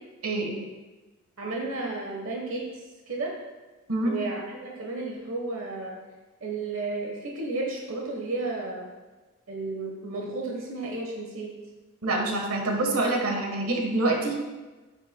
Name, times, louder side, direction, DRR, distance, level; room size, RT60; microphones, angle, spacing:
voice 1, 0.2-0.6 3.9-4.2 12.0-14.4, right 2 dB, 80° right, 2 dB, 1.3 m, -26 dB
voice 2, 1.4-2.7 3.1-3.3 4.0-6.0 6.4-8.8 9.5-11.5, right 3 dB, 60° right, -1 dB, 1.2 m, -33 dB
9.5 x 8.9 x 2.2 m, 1.2 s
head